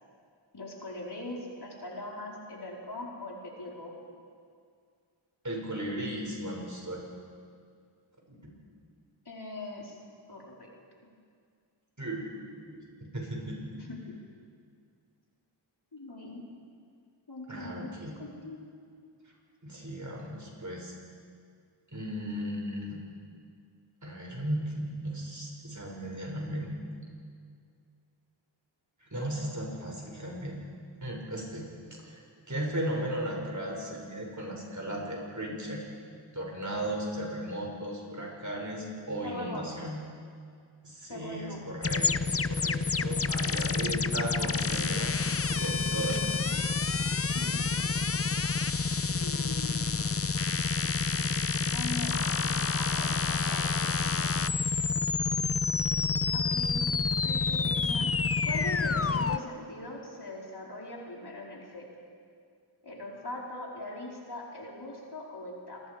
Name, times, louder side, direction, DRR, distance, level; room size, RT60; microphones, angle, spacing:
voice 1, 0.5-3.9 9.2-10.0 10.3-10.7 13.7-14.2 15.9-16.4 17.3-18.7 39.2-39.6 41.1-41.6 47.2-47.7 49.1-49.9 51.7-54.4 56.3-56.8 57.2-58.1 58.4-61.9 62.8-65.8, left 2 dB, 50° left, -3 dB, 4.4 m, -41 dB
voice 2, 5.4-7.0 8.3-8.5 12.0-13.7 17.5-18.1 19.6-20.9 21.9-23.0 24.0-26.8 29.0-30.6 31.0-31.7 32.0-32.2 32.5-35.8 36.3-40.0 40.8-46.2, right 1 dB, 35° right, -2 dB, 6.7 m, -36 dB
sound 1, 41.8-59.4, left 4 dB, 30° left, 0.6 m, -28 dB
27.5 x 20.5 x 5.1 m, 2.2 s
wide cardioid pair, 50°, 49 cm